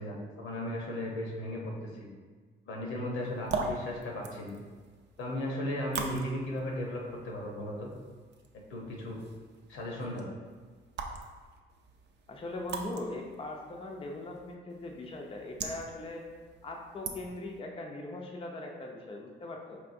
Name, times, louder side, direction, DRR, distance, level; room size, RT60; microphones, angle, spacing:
voice 1, 0.0-1.7 2.0-2.1 2.6-4.5 5.2-7.9 8.7-9.2 9.7-10.3, left 1 dB, 85° left, -1 dB, 0.9 m, -36 dB
sound 1, 3.2-17.6, right 4 dB, 60° right, 0.5 m, -42 dB
voice 2, 12.3-16.3 16.6-19.8, left 2 dB, 25° left, 1 dB, 0.5 m, -40 dB
4.6 x 3.2 x 2.6 m, 1.5 s
cardioid pair, 90°, 20 cm